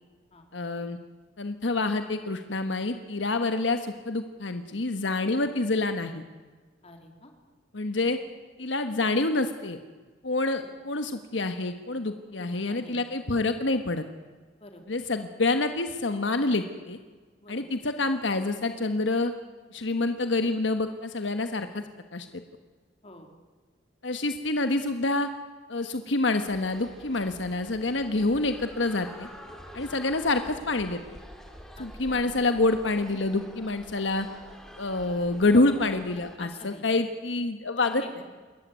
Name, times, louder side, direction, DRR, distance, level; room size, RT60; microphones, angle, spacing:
voice 1, 0.5-1.0 1.4-6.2 7.7-8.2 8.6-9.8 10.2-14.0 14.9-17.0 17.5-19.3 19.7-21.8 22.1-22.3 24.0-25.3 25.7-29.3 29.7-31.2 31.8-34.3 34.8-38.0, left 2 dB, 80° left, 8 dB, 1.3 m, -27 dB
voice 2, 6.8-7.3 10.6-10.7 12.3-13.0 14.6-14.8 17.4-17.6 23.0-23.3 29.8-29.9 31.8-32.3 35.5-36.0 36.4-36.8 37.9-38.2, left 1 dB, 35° left, 4 dB, 3.4 m, -46 dB
sound 1, 26.4-36.4, equal, 5° left, 3.4 m, -47 dB
27.5 x 14.0 x 9.5 m, 1.4 s
head